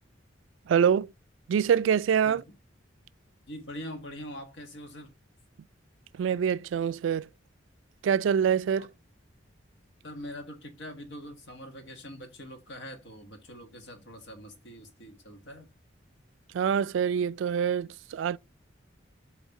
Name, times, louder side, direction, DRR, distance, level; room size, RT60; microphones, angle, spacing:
voice 1, 0.7-1.1 1.5-2.4 6.2-7.3 8.0-8.9 16.5-18.4, right 7 dB, 80° right, 0.3 m, -25 dB
voice 2, 3.5-5.1 8.8-8.9 10.0-15.7, equal, 80° left, 1.6 m, -43 dB
7.3 x 3.2 x 4.2 m
head